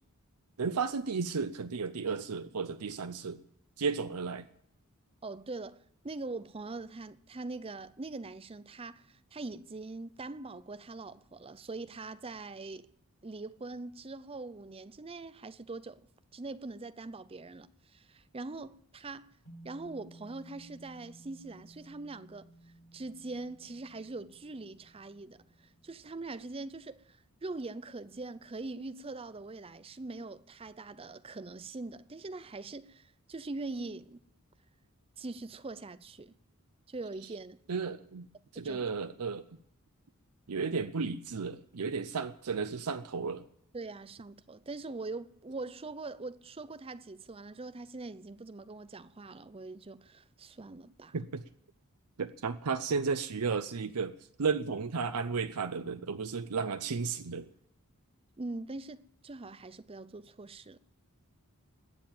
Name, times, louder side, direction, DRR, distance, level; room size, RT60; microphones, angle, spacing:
voice 1, 0.6-3.4 3.8-4.4 37.7-38.3 38.5-39.4 40.5-43.4 51.1-51.4 52.2-57.5, right 5 dB, 90° right, 0.6 m, -33 dB
voice 2, 5.2-12.9 13.2-19.3 19.6-22.5 22.9-34.2 35.2-36.3 36.9-37.6 38.5-38.8 43.7-51.2 58.4-60.8, right 3 dB, 25° right, 0.5 m, -42 dB
sound 1, 19.4-27.9, right 1 dB, 75° left, 4.6 m, -57 dB
20.5 x 7.4 x 8.8 m
head